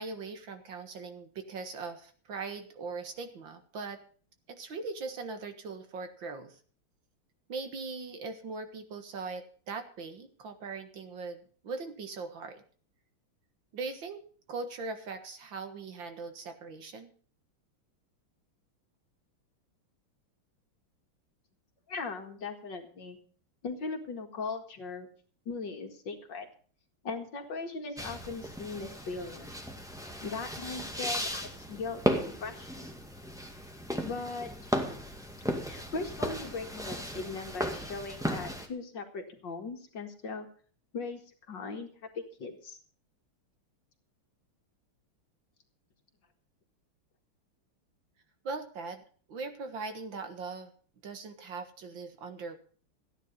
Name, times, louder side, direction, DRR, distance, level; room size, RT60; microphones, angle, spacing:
voice 1, 0.0-4.0 4.5-6.6 7.5-12.6 13.7-14.2 14.5-17.1 48.4-49.0 49.3-50.7 51.0-52.6, right 4 dB, 60° right, 8 dB, 2.2 m, -40 dB
voice 2, 21.9-23.2 23.6-25.1 25.5-26.5 27.0-29.5 30.2-32.9 34.0-34.7 35.6-40.5 40.9-41.2 41.5-42.8, left 4 dB, 55° left, 4 dB, 2.5 m, -39 dB
sound 1, 28.0-38.7, equal, ahead, 1.7 m, -35 dB
15.0 x 10.0 x 5.4 m, 0.43 s
omnidirectional pair, 2.4 m